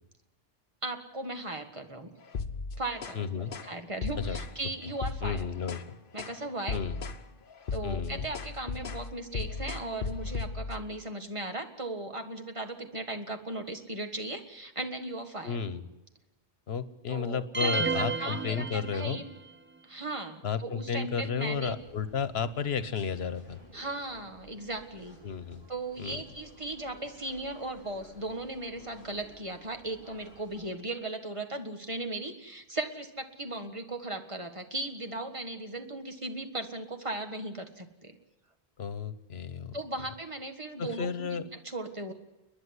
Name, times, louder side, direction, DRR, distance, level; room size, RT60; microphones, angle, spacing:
voice 1, 0.8-2.1 2.8-3.3 3.6-5.4 6.1-6.8 7.7-15.6 17.1-19.2 19.8-21.7 23.7-25.2 25.7-38.2 39.7-41.4 41.6-42.1, right 2 dB, 30° right, 6 dB, 1.7 m, -37 dB
sound 1, 2.3-3.2 3.5-3.7 4.0-4.6 4.9-5.9 6.2-6.4 6.7-7.2 7.5-10.8, left 4 dB, 60° left, 1.1 m, -36 dB
voice 2, 3.1-3.5 4.2-4.4 5.2-5.8 6.7-7.0 7.8-8.3 15.4-15.8 16.7-19.2 20.4-23.6 25.2-25.6 26.0-26.2 38.8-39.8 40.8-41.5, left 6 dB, 80° left, 14 dB, 1.3 m, -33 dB
sound 2, 17.5-19.4, right 4 dB, 15° right, 0.7 m, -32 dB
sound 3, 21.5-30.7, equal, 80° right, 6.1 m, -55 dB
30.0 x 10.5 x 9.7 m, 1.0 s
omnidirectional pair, 1.0 m